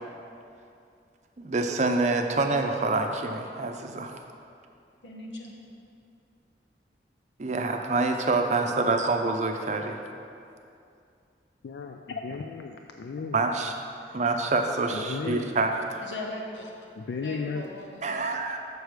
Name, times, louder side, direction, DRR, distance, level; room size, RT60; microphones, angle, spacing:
voice 1, 1.4-4.1 7.4-10.0 13.3-13.7 14.1-16.1 18.0-18.6, right 3 dB, 40° right, 4 dB, 0.5 m, -26 dB
voice 2, 5.0-5.6 16.0-16.7 17.2-18.6, left 2 dB, 90° left, 0 dB, 1.2 m, -39 dB
voice 3, 11.6-13.4 14.0-14.2 14.9-15.6 16.9-17.7, left 5 dB, 75° left, 4 dB, 0.3 m, -35 dB
6.8 x 6.4 x 4.8 m, 2.5 s
head